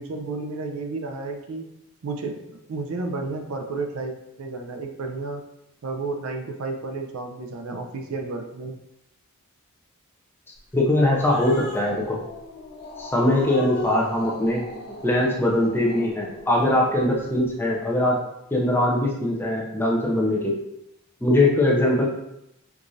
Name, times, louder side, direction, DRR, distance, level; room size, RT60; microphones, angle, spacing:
voice 1, 0.0-1.7 2.0-2.4 2.7-5.4 5.8-8.8, right 3 dB, 75° right, 4 dB, 0.5 m, -32 dB
Growling, 10.7-17.5, left 2 dB, 45° left, 0.8 m, -38 dB
voice 2, 10.7-12.2 13.0-14.6 15.0-18.2 18.5-20.5 21.2-22.1, left 1 dB, 10° left, -2 dB, 0.5 m, -21 dB
4.6 x 2.5 x 2.6 m, 0.84 s
head